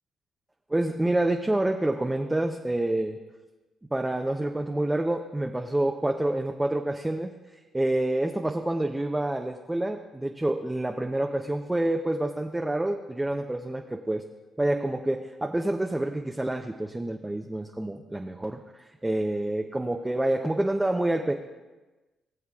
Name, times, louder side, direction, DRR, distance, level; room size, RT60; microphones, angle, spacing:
voice 1, 0.7-3.2 3.9-7.3 7.7-14.2 14.6-21.3, right 1 dB, 10° right, 3 dB, 0.6 m, -27 dB
19.0 x 7.3 x 2.4 m, 1.2 s
cardioid pair, 90°, 0 cm